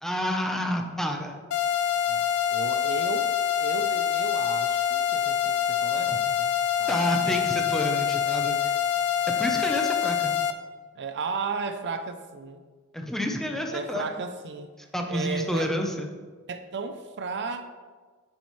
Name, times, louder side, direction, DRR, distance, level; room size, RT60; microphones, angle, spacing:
voice 1, 0.0-1.4 6.9-8.7 9.4-10.3 12.9-14.1 14.9-16.1, equal, ahead, 2 dB, 0.8 m, -29 dB
sound 1, 1.5-10.5, left 9 dB, 85° left, 0.6 m, -25 dB
voice 2, 2.1-3.3 3.6-6.5 6.8-7.0 7.2-7.4 10.9-12.6 13.7-14.7 15.1-15.7 16.5-17.7, right 4 dB, 55° right, 8 dB, 0.6 m, -34 dB
9.8 x 7.2 x 3.2 m, 1.4 s
head